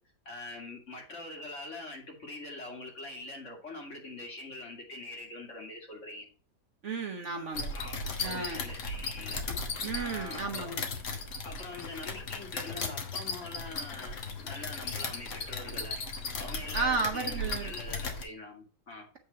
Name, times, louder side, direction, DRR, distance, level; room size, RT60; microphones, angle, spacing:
voice 1, 0.3-6.3 7.7-9.4 9.9-10.7 11.4-16.0 16.4-19.1, left 2 dB, 45° left, 1 dB, 2.4 m, -44 dB
voice 2, 6.8-7.7 8.2-8.6 9.8-10.8 16.7-17.7, right 4 dB, 50° right, 4 dB, 1.0 m, -33 dB
sound 1, 7.5-18.2, left 3 dB, 70° left, 1.9 m, -37 dB
8.5 x 3.8 x 6.7 m, 0.40 s
omnidirectional pair, 1.8 m